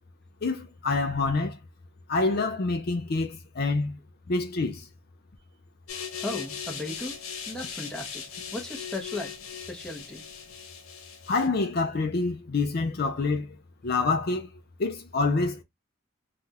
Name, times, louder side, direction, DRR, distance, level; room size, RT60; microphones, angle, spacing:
voice 1, 0.4-1.6 2.1-4.0 4.3-4.9 11.3-13.6 13.8-14.5 14.8-15.6, left 3 dB, 45° left, 0.5 m, -27 dB
sound 1, 5.9-11.5, left 7 dB, 90° left, 0.9 m, -39 dB
voice 2, 6.2-7.2 7.5-8.2 8.5-10.2, left 2 dB, 5° left, 0.8 m, -36 dB
3.3 x 2.4 x 2.7 m
head